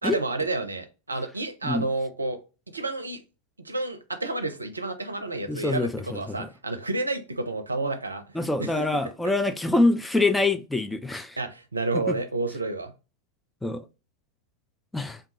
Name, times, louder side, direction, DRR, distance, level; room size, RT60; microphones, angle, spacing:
voice 1, 0.0-2.4 2.7-3.2 3.6-8.2 8.6-8.9 11.4-12.9, right 2 dB, 80° right, 0.5 m, -30 dB
voice 2, 5.5-6.5 8.3-11.4 12.1-12.2 13.6-13.8 14.9-15.2, left 2 dB, 5° left, 0.3 m, -25 dB
3.4 x 2.3 x 2.9 m
figure-of-eight pair, 90°, 0 cm